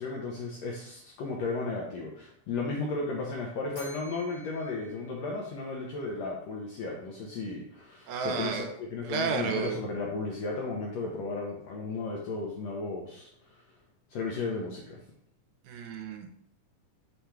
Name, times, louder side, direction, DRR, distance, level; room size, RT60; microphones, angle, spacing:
voice 1, 0.0-13.3 14.1-15.0, left 3 dB, 80° left, -1 dB, 1.5 m, -34 dB
Bell, 3.7-6.0, equal, 35° left, 0.9 m, -51 dB
voice 2, 8.1-8.7 9.0-9.8 15.7-16.3, right 6 dB, 80° right, 5 dB, 2.0 m, -32 dB
5.2 x 2.3 x 4.4 m, 0.70 s
omnidirectional pair, 3.7 m